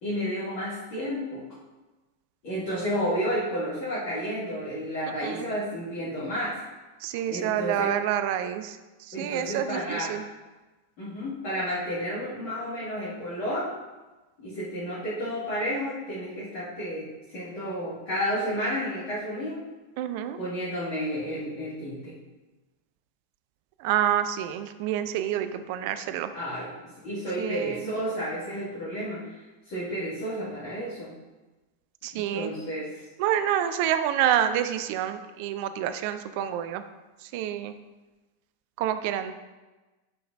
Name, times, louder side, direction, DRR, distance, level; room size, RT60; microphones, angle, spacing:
voice 1, 0.0-1.4 2.4-6.5 7.3-7.9 9.1-10.1 11.0-13.7 14.4-19.6 20.4-22.1 26.3-26.7 27.0-29.2 29.7-31.1 32.1-32.9, equal, 45° left, -10 dB, 2.0 m, -31 dB
voice 2, 7.0-8.8 9.1-10.2 20.0-20.4 23.8-26.3 27.4-27.9 32.0-32.5 33.2-36.8 37.3-37.8 38.8-39.3, right 10 dB, 45° right, 10 dB, 0.4 m, -28 dB
9.2 x 4.8 x 2.6 m, 1.2 s
figure-of-eight pair, 90°, 0 cm